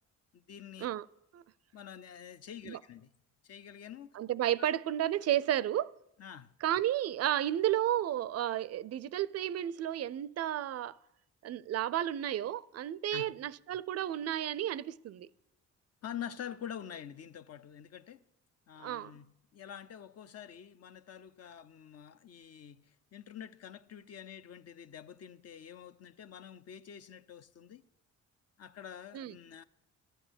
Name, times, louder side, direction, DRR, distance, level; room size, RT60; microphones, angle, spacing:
voice 1, 0.3-0.9 1.7-3.1 3.4-4.2 4.6-4.7 6.2-6.5 13.1-13.3 16.0-18.2 18.7-27.8 28.6-29.6, left 9 dB, 55° left, 0.7 m, -47 dB
voice 2, 4.1-5.9 6.6-11.0 11.4-15.3 18.8-19.1 29.1-29.3, right 12 dB, 55° right, 0.4 m, -32 dB
11.0 x 9.7 x 8.0 m
cardioid pair, 90°, 30 cm